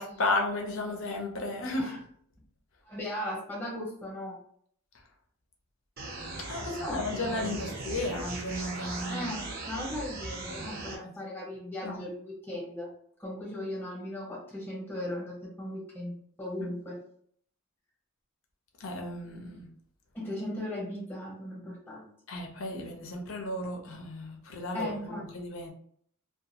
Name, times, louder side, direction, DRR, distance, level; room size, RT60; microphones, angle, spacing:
voice 1, 0.0-2.0 4.9-5.0 6.4-9.3 10.8-11.1 11.8-12.0 16.6-16.7 18.8-19.7 22.3-25.7, left 2 dB, 65° left, 0.6 m, -34 dB
voice 2, 2.8-4.4 6.7-7.7 9.1-12.9 13.2-17.0 20.1-22.1 24.7-25.2, left 1 dB, 10° left, 0.9 m, -37 dB
sound 1, 6.0-11.0, right 3 dB, 45° right, 0.6 m, -38 dB
2.4 x 2.4 x 2.8 m
head